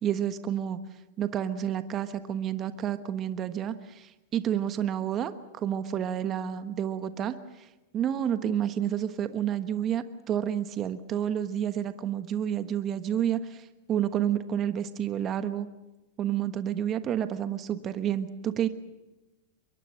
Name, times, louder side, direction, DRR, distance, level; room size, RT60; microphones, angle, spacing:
voice 1, 0.0-0.8 1.2-7.7 7.9-15.7 16.2-18.7, right 10 dB, 35° right, 10 dB, 1.3 m, -30 dB
23.5 x 23.0 x 6.5 m, 1.1 s
hypercardioid pair, 105°, 0 cm